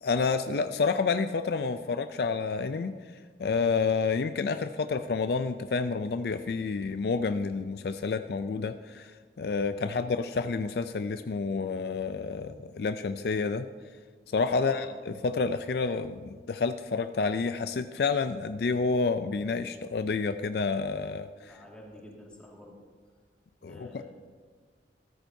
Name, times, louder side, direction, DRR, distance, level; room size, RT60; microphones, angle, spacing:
voice 1, 0.0-2.9 3.4-13.7 14.3-21.5 23.6-24.0, left 4 dB, 60° left, 10 dB, 0.4 m, -29 dB
voice 2, 14.5-14.9 21.4-22.8 23.6-24.1, left 1 dB, 5° left, -3 dB, 2.0 m, -49 dB
15.0 x 13.0 x 2.7 m, 1.5 s
head